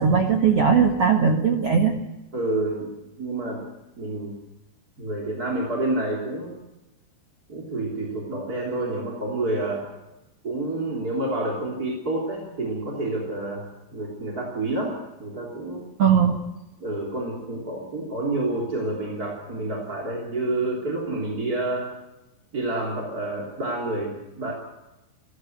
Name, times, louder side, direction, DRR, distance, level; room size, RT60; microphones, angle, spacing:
voice 1, 0.0-1.9 16.0-16.3, right 6 dB, 85° right, 2 dB, 1.3 m, -19 dB
voice 2, 2.3-2.9 3.2-3.6 4.0-4.3 5.0-6.5 7.5-9.8 10.4-13.6 13.9-15.8 16.8-21.9 22.5-24.5, right 2 dB, 25° right, -2 dB, 3.1 m, -28 dB
29.5 x 12.5 x 8.0 m, 1.0 s
omnidirectional pair, 5.4 m